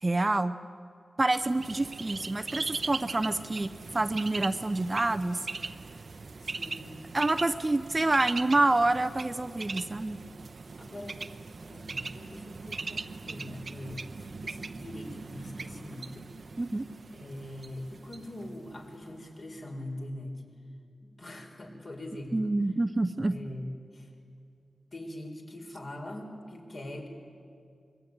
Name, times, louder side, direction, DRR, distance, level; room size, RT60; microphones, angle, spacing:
voice 1, 0.0-0.6 1.2-5.4 7.1-10.2 16.6-16.9 22.3-23.4, right 2 dB, 25° right, 11 dB, 0.6 m, -27 dB
Bird, 1.4-19.1, right 4 dB, 50° right, 0.9 m, -40 dB
voice 2, 6.4-7.1 10.8-11.3 11.7-16.3 17.1-20.4 21.0-22.6 23.3-24.1 24.9-27.1, left 1 dB, 45° left, 2 dB, 4.4 m, -42 dB
25.0 x 22.5 x 9.5 m, 2.3 s
wide cardioid pair, 140°, 0 cm